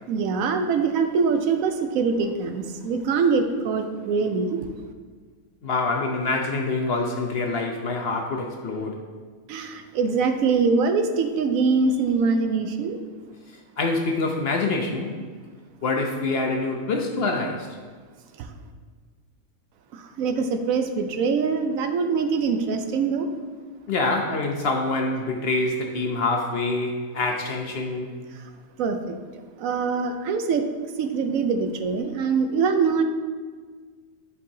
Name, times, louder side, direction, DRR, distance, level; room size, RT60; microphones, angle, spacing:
voice 1, 0.1-4.7 9.5-13.0 18.4-18.5 19.9-23.3 28.3-28.4 28.8-29.2 29.6-30.7 31.0-33.0, right 5 dB, 80° right, 7 dB, 1.0 m, -23 dB
voice 2, 5.6-9.0 13.8-15.2 15.8-17.7 23.9-28.2, left 3 dB, 60° left, 2 dB, 0.7 m, -26 dB
10.0 x 4.7 x 2.7 m, 1.5 s
omnidirectional pair, 1.5 m